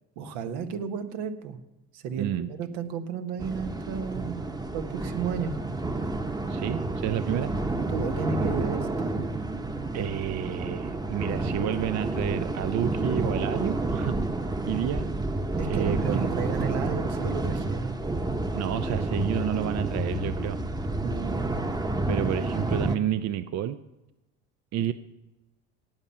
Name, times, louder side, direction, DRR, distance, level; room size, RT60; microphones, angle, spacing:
voice 1, 0.2-1.6 1.9-4.4 4.7-5.5 7.8-9.3 15.6-18.0 21.0-21.5, right 6 dB, 75° right, 8 dB, 1.5 m, -33 dB
voice 2, 2.2-2.5 6.5-7.5 9.9-14.2 14.6-15.2 15.6-16.5 18.6-20.6 22.1-23.8 24.7-24.9, right 11 dB, 50° right, 12 dB, 0.6 m, -30 dB
sound 1, 3.4-23.0, right 2 dB, 10° right, 1.0 m, -30 dB
17.5 x 7.4 x 5.6 m, 1.0 s
supercardioid pair, 85°, 34 cm